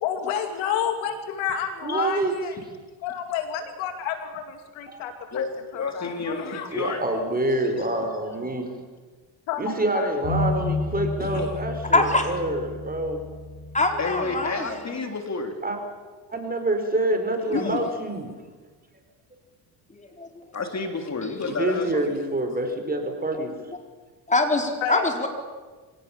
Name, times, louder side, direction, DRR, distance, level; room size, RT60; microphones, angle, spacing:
voice 1, 0.0-2.6 3.0-5.4 5.7-6.7 9.5-10.1 24.8-25.3, left 8 dB, 80° left, 6 dB, 2.7 m, -30 dB
voice 2, 1.8-2.3 4.9-5.0 6.7-8.7 9.6-13.2 15.6-15.8 16.3-18.3 21.4-23.5, right 1 dB, 20° right, 5 dB, 4.7 m, -26 dB
voice 3, 5.3-7.0 7.8-7.9 11.2-11.5 14.0-15.6 17.5-17.9 20.5-22.1, left 4 dB, 35° left, 5 dB, 3.3 m, -30 dB
sound 1, 10.2-14.5, left 3 dB, 50° left, 5.4 m, -31 dB
voice 4, 11.9-12.3 13.7-14.9 17.6-17.8 19.9-20.5 24.3-25.3, left 2 dB, 15° left, 3 dB, 4.3 m, -24 dB
24.5 x 18.0 x 7.4 m, 1.4 s
supercardioid pair, 80°, 46 cm